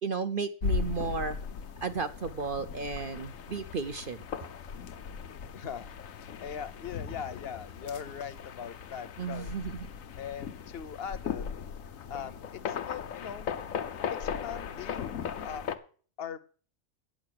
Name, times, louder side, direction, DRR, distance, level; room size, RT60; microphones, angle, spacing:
voice 1, 0.0-1.4 1.8-4.2 9.2-9.9, right 5 dB, 45° right, 10 dB, 0.9 m, -33 dB
sound 1, 0.6-15.8, left 7 dB, 85° left, 1.3 m, -38 dB
voice 2, 5.5-9.5 10.2-11.5 12.1-13.5 14.1-15.8 16.2-16.4, left 7 dB, 55° left, 14 dB, 0.9 m, -40 dB
9.6 x 7.7 x 8.4 m, 0.42 s
omnidirectional pair, 1.4 m